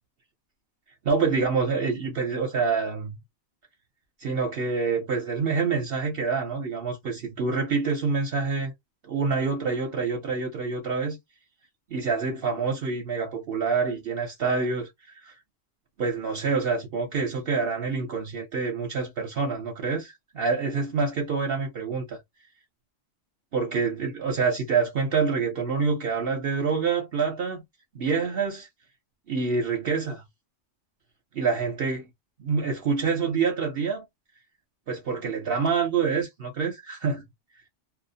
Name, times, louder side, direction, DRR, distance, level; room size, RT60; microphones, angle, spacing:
voice 1, 1.0-3.2 4.2-8.7 9.0-11.2 11.9-14.9 15.3-15.4 16.0-22.2 23.5-27.6 27.9-28.7 29.3-30.2 31.3-32.1 32.4-34.0 34.9-37.2, right 5 dB, 60° right, 0.9 m, -26 dB
2.3 x 2.0 x 2.6 m
omnidirectional pair, 1.2 m